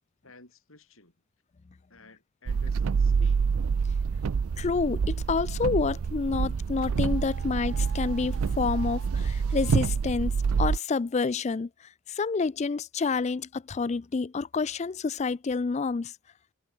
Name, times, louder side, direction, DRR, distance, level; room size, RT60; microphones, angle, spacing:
voice 1, 0.2-1.1 1.9-3.5, left 2 dB, 70° left, 7.6 m, -53 dB
sound 1, 2.5-10.8, right 5 dB, 75° right, 0.4 m, -27 dB
voice 2, 4.6-11.7 12.1-16.1, left 4 dB, 30° left, 0.3 m, -28 dB
head